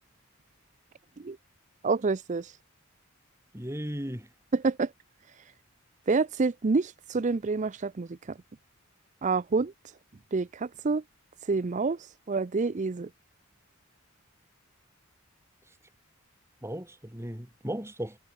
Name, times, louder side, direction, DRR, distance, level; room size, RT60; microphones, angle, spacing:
voice 1, 1.8-2.5 4.5-4.9 6.1-8.2 9.2-9.7 10.3-11.0 11.5-12.0 12.3-13.1, right 4 dB, 35° right, 0.5 m, -27 dB
voice 2, 3.5-4.3 16.6-18.2, equal, 10° right, 3.8 m, -36 dB
head